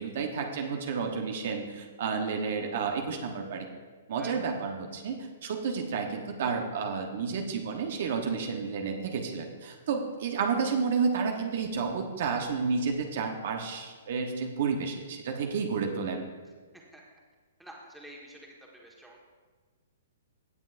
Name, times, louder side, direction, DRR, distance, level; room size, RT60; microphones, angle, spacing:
voice 1, 0.0-3.7 4.1-16.2, right 5 dB, 60° right, 3 dB, 1.0 m, -31 dB
voice 2, 17.6-19.2, right 1 dB, 5° right, -2 dB, 1.6 m, -49 dB
16.5 x 7.4 x 2.6 m, 1.4 s
hypercardioid pair, 130°, 0 cm